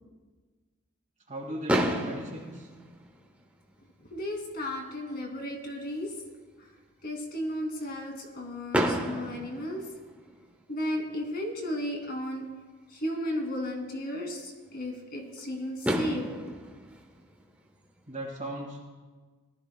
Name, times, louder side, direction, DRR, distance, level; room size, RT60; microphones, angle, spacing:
voice 1, 1.3-2.7 18.1-18.9, right 1 dB, 35° right, -5 dB, 2.0 m, -38 dB
Fireworks, 1.7-3.7 4.5-4.6 4.8-5.0 5.3-5.4 8.7-10.6 12.3-12.4 15.4-15.5 15.8-18.1, equal, 5° right, 1.0 m, -32 dB
voice 2, 4.1-6.1 7.0-9.8 10.7-12.5 12.9-16.5, left 1 dB, 45° left, 1 dB, 2.4 m, -34 dB
19.5 x 13.5 x 2.2 m, 1.4 s
head